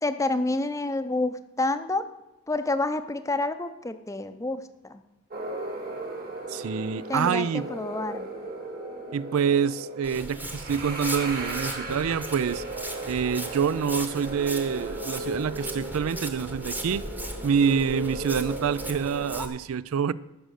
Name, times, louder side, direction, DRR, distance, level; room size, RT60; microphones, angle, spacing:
voice 1, 0.0-2.1 2.5-5.0 7.1-8.3, left 2 dB, 15° left, 0.6 m, -28 dB
sound 1, 5.3-19.4, right 2 dB, 45° right, 2.0 m, -36 dB
voice 2, 6.5-7.6 9.1-12.6 13.1-17.0 17.4-20.1, right 7 dB, 85° right, 0.4 m, -26 dB
Walk footsteps, 10.0-19.5, right 1 dB, 10° right, 1.0 m, -38 dB
14.5 x 6.3 x 6.4 m
head